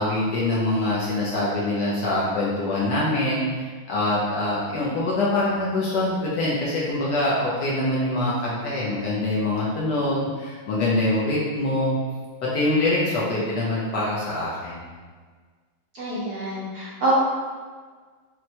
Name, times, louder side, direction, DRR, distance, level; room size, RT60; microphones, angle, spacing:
voice 1, 0.0-3.5 3.9-12.0 12.4-14.9, left 2 dB, 70° left, -6 dB, 1.1 m, -24 dB
voice 2, 15.9-17.1, right 3 dB, 65° right, -8 dB, 1.0 m, -27 dB
4.3 x 2.1 x 2.7 m, 1.5 s
omnidirectional pair, 2.2 m